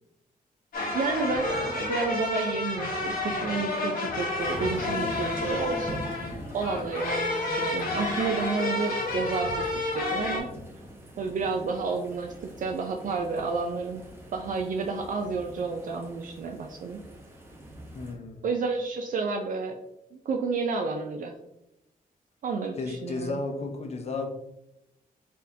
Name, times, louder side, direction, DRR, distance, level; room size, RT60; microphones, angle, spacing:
sound 1, 0.7-10.4, left 2 dB, 70° left, 1.2 m, -30 dB
voice 1, 0.9-9.7 9.9-10.5 11.2-14.0 14.3-17.0 18.4-19.7 20.1-21.3 22.4-23.4, right 4 dB, 60° right, 3 dB, 0.4 m, -30 dB
sound 2, 4.3-18.1, right 1 dB, 15° right, 0.8 m, -44 dB
voice 2, 17.9-18.4 22.8-24.3, left 3 dB, 45° left, 5 dB, 0.6 m, -33 dB
4.4 x 3.5 x 2.6 m, 0.87 s
wide cardioid pair, 150°, 15 cm